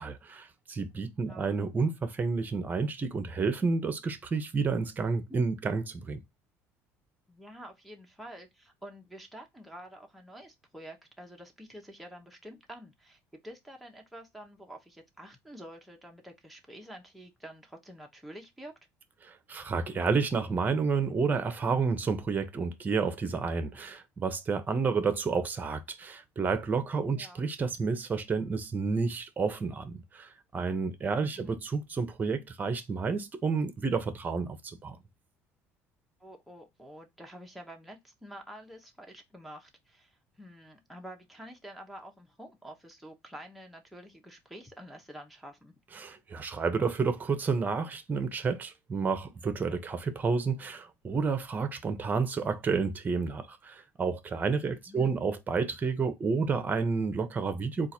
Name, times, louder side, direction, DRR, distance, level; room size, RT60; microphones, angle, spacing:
voice 1, 0.0-6.2 19.2-35.0 45.9-57.9, right 4 dB, 30° right, 0.9 m, -30 dB
voice 2, 7.3-18.7 27.1-27.5 31.4-31.6 36.2-45.7 54.6-55.1, equal, ahead, 0.9 m, -48 dB
3.8 x 2.5 x 4.3 m
supercardioid pair, 95°, 6 cm